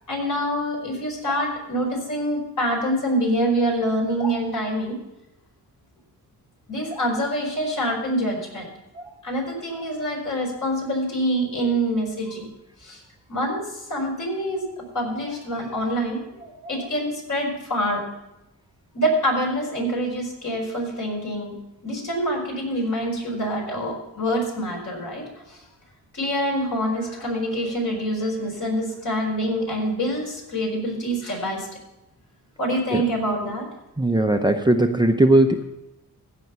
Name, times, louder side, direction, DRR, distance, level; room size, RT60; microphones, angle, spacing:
voice 1, 0.1-5.0 6.7-8.7 8.9-12.5 12.8-13.0 13.3-18.0 18.9-21.5 21.8-25.6 26.1-31.7 32.6-33.6, equal, 50° left, -1 dB, 4.8 m, -26 dB
voice 2, 34.0-35.6, right 1 dB, 10° right, 6 dB, 0.6 m, -18 dB
15.5 x 5.4 x 6.8 m, 0.93 s
cardioid pair, 95°, 38 cm